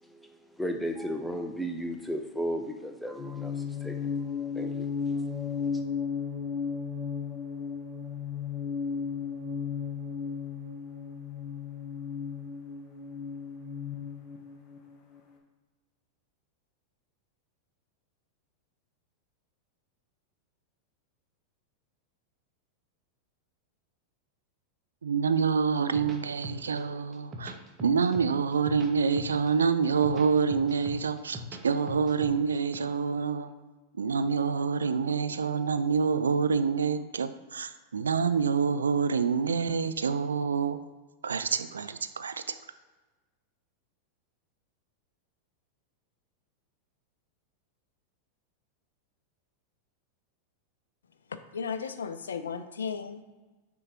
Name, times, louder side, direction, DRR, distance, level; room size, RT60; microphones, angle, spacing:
voice 1, 0.0-5.7, equal, 5° left, 5 dB, 0.6 m, -36 dB
sound 1, 3.2-15.2, left 6 dB, 35° left, 0.9 m, -35 dB
voice 2, 25.0-27.5 27.8-33.5 34.0-40.8 41.2-42.6, right 5 dB, 70° right, 12 dB, 0.3 m, -27 dB
sound 2, 25.8-26.8 27.1-28.3 28.5-29.5 29.8-31.6 31.9-32.8, left 1 dB, 20° right, 0.9 m, -41 dB
voice 3, 51.3-53.2, left 6 dB, 70° left, 11 dB, 0.4 m, -35 dB
9.4 x 3.6 x 2.9 m, 1.2 s
figure-of-eight pair, 90°, 0 cm